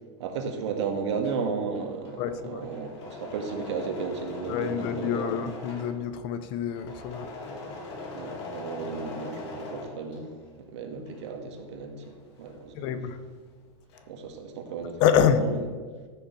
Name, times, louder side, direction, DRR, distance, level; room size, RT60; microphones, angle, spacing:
voice 1, 0.2-5.3 8.1-10.3 10.6-12.0 12.4-12.9 14.1-15.6, right 5 dB, 65° right, 4 dB, 1.8 m, -34 dB
Engine / Mechanisms, 1.0-10.6 10.9-13.3 13.5-14.3, left 3 dB, 60° left, 2.2 m, -41 dB
voice 2, 2.2-2.7 4.5-7.3 12.8-13.2 15.0-15.4, left 8 dB, 30° left, 11 dB, 0.5 m, -26 dB
14.0 x 6.5 x 4.6 m, 1.5 s
supercardioid pair, 170°, 16 cm